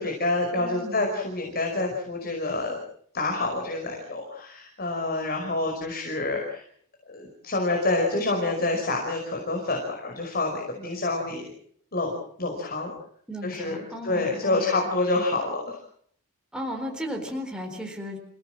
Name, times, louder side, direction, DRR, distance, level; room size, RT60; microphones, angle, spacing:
voice 1, 0.0-2.8 3.1-6.6 7.1-11.5 11.9-12.9 13.4-15.8, left 2 dB, 45° left, 2 dB, 5.3 m, -27 dB
voice 2, 0.6-1.1 13.3-14.7 16.5-18.2, equal, 5° right, 2 dB, 4.2 m, -35 dB
29.0 x 17.5 x 7.7 m, 0.62 s
head